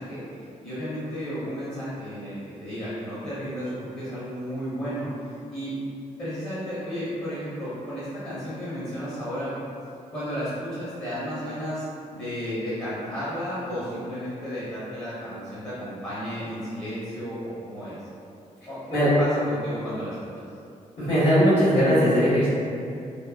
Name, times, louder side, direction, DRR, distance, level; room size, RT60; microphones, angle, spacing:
voice 1, 0.0-5.1 5.5-5.7 6.2-9.5 10.1-11.8 12.1-18.0 18.7-20.4, equal, 25° left, -12 dB, 0.8 m, -33 dB
voice 2, 21.0-22.5, equal, 65° left, -17 dB, 1.3 m, -19 dB
2.9 x 2.0 x 2.3 m, 2.5 s
cardioid pair, 105°, 14 cm